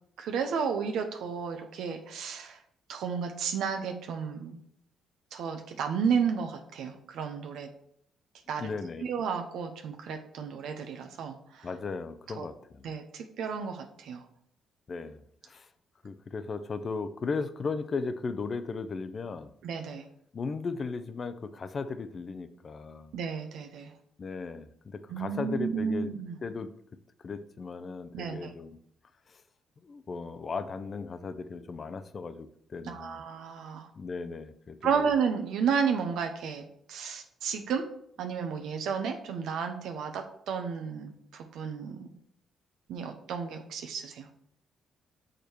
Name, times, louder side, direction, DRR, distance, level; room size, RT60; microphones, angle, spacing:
voice 1, 0.2-2.6 2.9-4.6 5.3-7.7 8.5-8.7 9.0-11.7 12.4-12.5 12.8-14.2 19.6-20.1 23.1-23.9 25.1-26.4 28.1-28.5 32.9-33.9 34.8-37.9 38.2-42.1 42.9-44.3, right 6 dB, 80° right, 5 dB, 0.8 m, -32 dB
voice 2, 8.6-9.1 11.6-12.9 14.9-15.7 16.0-19.5 20.3-23.1 24.2-26.1 26.4-26.7 27.2-28.8 29.3-29.4 29.8-33.2 34.0-35.1, left 4 dB, 40° left, 12 dB, 0.6 m, -36 dB
6.6 x 5.0 x 4.5 m, 0.68 s
cardioid pair, 90°, 0 cm